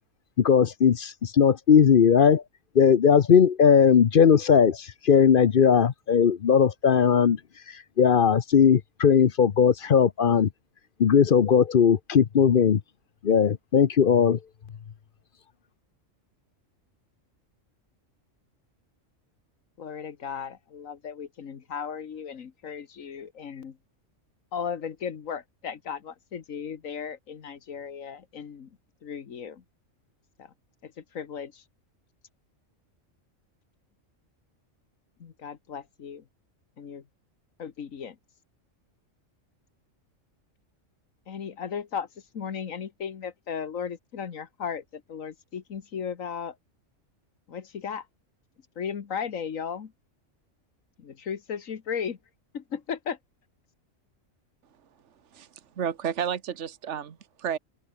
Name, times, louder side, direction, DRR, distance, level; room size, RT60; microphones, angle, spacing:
voice 1, 0.4-2.4 2.7-7.4 8.0-10.5 11.0-12.8 13.2-14.4, left 7 dB, 50° left, 0.8 m, -19 dB
voice 2, 19.8-23.7 24.5-28.7 29.0-29.6 30.4-30.5 30.8-31.6 35.2-36.2 36.8-37.0 37.6-38.1 41.3-42.1 42.3-46.5 47.5-48.0 48.8-49.9 51.0-52.2 52.5-53.2, left 7 dB, 85° left, 1.7 m, -36 dB
voice 3, 55.8-57.6, right 8 dB, 65° right, 1.5 m, -31 dB
open air
omnidirectional pair, 1.3 m